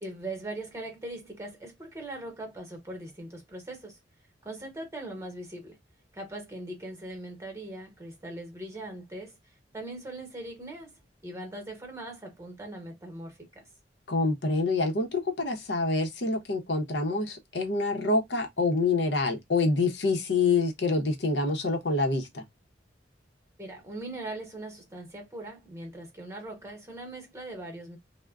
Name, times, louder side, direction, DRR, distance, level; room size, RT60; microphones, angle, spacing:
voice 1, 0.0-4.0 4.4-5.8 6.1-9.4 9.7-13.6 23.6-28.0, right 1 dB, 15° right, 1.0 m, -40 dB
voice 2, 14.1-22.4, left 3 dB, 75° left, 0.8 m, -26 dB
3.4 x 2.1 x 2.3 m
head